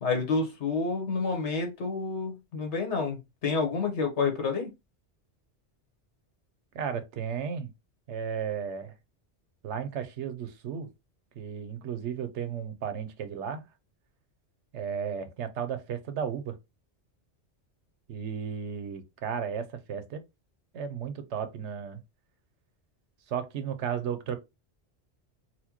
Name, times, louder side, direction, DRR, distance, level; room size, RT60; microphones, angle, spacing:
voice 1, 0.0-4.7, left 4 dB, 80° left, 1.3 m, -29 dB
voice 2, 6.7-7.7 8.1-8.9 9.6-10.9 11.4-13.6 14.7-16.6 18.1-20.2 20.7-22.0 23.3-24.4, right 7 dB, 80° right, 1.0 m, -34 dB
4.2 x 2.2 x 2.9 m
omnidirectional pair, 1.2 m